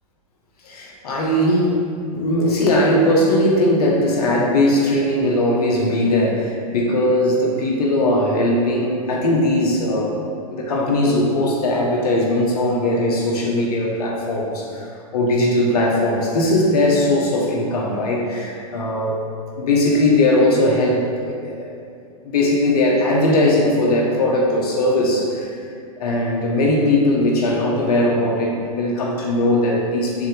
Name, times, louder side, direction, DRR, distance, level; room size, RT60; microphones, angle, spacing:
voice 1, 0.6-1.8 2.1-10.2 10.5-14.9 15.1-19.2 19.6-21.7 22.2-25.5 26.0-30.3, left 1 dB, 75° left, -2 dB, 1.5 m, -19 dB
6.8 x 3.0 x 5.4 m, 2.3 s
hypercardioid pair, 125°, 20 cm